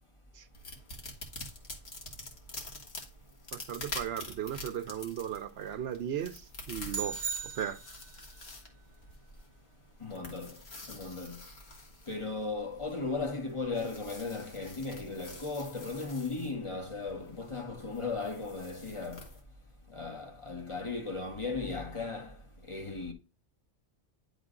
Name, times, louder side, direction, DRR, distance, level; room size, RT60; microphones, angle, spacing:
sound 1, 0.5-19.4, left 2 dB, 65° left, 1.8 m, -47 dB
voice 1, 3.5-7.2 7.4-7.8, right 9 dB, 70° right, 0.8 m, -36 dB
sound 2, 6.9-8.2, right 6 dB, 45° right, 1.2 m, -37 dB
voice 2, 10.0-10.6 10.9-11.4 12.1-19.3 19.9-22.4 22.6-23.1, left 3 dB, 30° left, 1.0 m, -36 dB
9.8 x 3.7 x 3.7 m
omnidirectional pair, 1.1 m